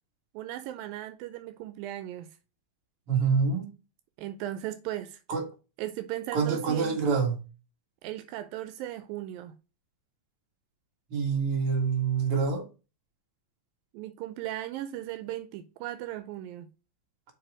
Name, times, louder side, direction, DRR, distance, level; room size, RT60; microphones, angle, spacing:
voice 1, 0.3-2.3 4.2-5.2 5.8-7.0 8.0-9.6 13.9-16.7, right 14 dB, 85° right, 2.4 m, -37 dB
voice 2, 3.1-3.7 5.3-5.5 6.3-7.4 11.1-12.7, right 5 dB, 45° right, 2.4 m, -26 dB
6.0 x 4.8 x 4.7 m
omnidirectional pair, 4.1 m